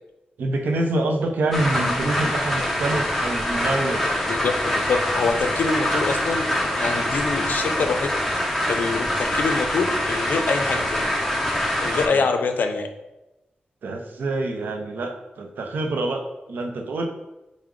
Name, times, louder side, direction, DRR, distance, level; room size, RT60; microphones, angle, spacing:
voice 1, 0.4-4.1 12.1-12.2 13.8-17.0, right 2 dB, 85° right, 3 dB, 0.5 m, -26 dB
sound 1, 1.5-12.1, left 1 dB, 5° left, 0.6 m, -24 dB
voice 2, 4.3-8.1 8.7-11.0 11.8-12.9, left 4 dB, 75° left, 6 dB, 0.4 m, -25 dB
4.7 x 2.1 x 3.6 m, 0.98 s
wide cardioid pair, 125°, 3 cm